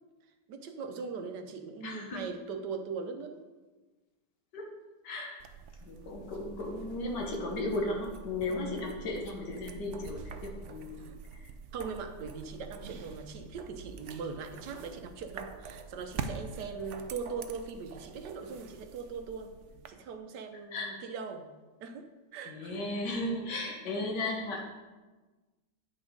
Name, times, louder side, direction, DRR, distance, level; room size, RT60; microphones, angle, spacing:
voice 1, 0.5-3.4 11.0-11.1 11.7-19.5 19.9-21.5 21.8-22.9, right 5 dB, 80° right, 6 dB, 1.5 m, -40 dB
voice 2, 1.8-2.2 4.5-4.7 5.0-5.4 5.8-11.1 11.4-11.5 20.7-21.0 22.5-24.6, left 2 dB, 85° left, 0 dB, 1.9 m, -35 dB
sound 1, 5.4-19.9, right 5 dB, 60° right, 0.8 m, -45 dB
9.6 x 6.2 x 5.1 m, 1.2 s
omnidirectional pair, 1.8 m